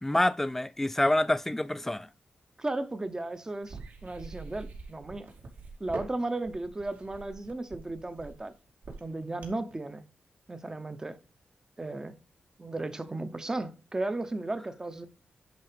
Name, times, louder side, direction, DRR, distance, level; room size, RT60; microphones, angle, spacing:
voice 1, 0.0-2.1, left 1 dB, 10° left, 0.4 m, -27 dB
voice 2, 2.6-5.3 5.8-8.5 9.0-10.0 10.5-11.2 11.8-12.2 12.6-15.1, right 2 dB, 20° right, 0.9 m, -35 dB
sound 1, 3.7-9.7, right 4 dB, 75° right, 2.4 m, -44 dB
10.5 x 3.8 x 5.1 m
wide cardioid pair, 140°, 3 cm